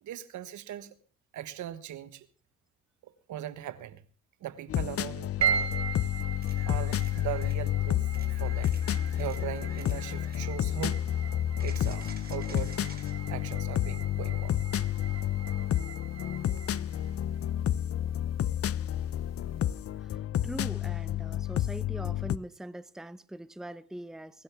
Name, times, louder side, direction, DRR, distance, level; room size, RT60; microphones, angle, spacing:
voice 1, 0.0-0.9 1.3-2.3 3.0-4.0 4.4-5.7 6.6-8.0 8.4-8.7 9.2-11.1 11.6-12.8 13.3-14.6, right 12 dB, 75° right, 1.3 m, -39 dB
sound 1, 4.7-22.4, left 11 dB, 50° left, 0.6 m, -30 dB
sound 2, 5.4-19.9, right 7 dB, 60° right, 1.8 m, -39 dB
sound 3, 6.4-7.6 8.1-10.4 11.6-13.1 16.6-16.7, right 4 dB, 30° right, 3.3 m, -52 dB
voice 2, 20.0-24.4, right 1 dB, ahead, 0.7 m, -42 dB
22.0 x 11.5 x 3.5 m
cardioid pair, 90°, 30 cm